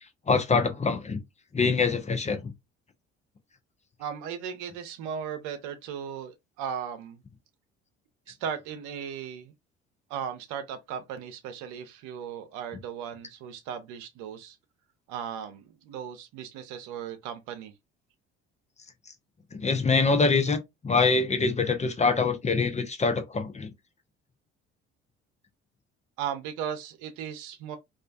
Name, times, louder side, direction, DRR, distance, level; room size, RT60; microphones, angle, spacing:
voice 1, 0.3-1.2 1.5-2.5 19.5-23.7, left 4 dB, 20° left, 0.6 m, -24 dB
voice 2, 4.0-7.2 8.3-9.5 10.1-14.6 15.1-17.7 26.2-27.8, right 8 dB, 70° right, 0.7 m, -37 dB
2.4 x 2.2 x 2.5 m
hypercardioid pair, 55°, 31 cm